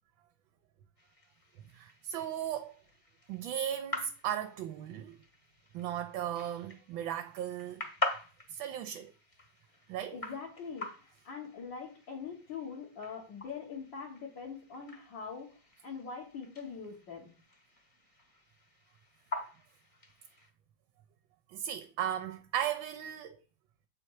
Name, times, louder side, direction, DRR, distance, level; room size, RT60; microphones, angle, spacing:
sound 1, 1.0-20.5, left 2 dB, 20° left, 1.0 m, -45 dB
voice 1, 1.7-2.7 3.3-5.1 5.7-7.8 8.5-9.1 9.9-10.2 21.5-23.4, right 10 dB, 75° right, 1.3 m, -36 dB
voice 2, 10.1-17.3, left 5 dB, 65° left, 2.0 m, -43 dB
7.7 x 4.4 x 4.6 m
omnidirectional pair, 2.2 m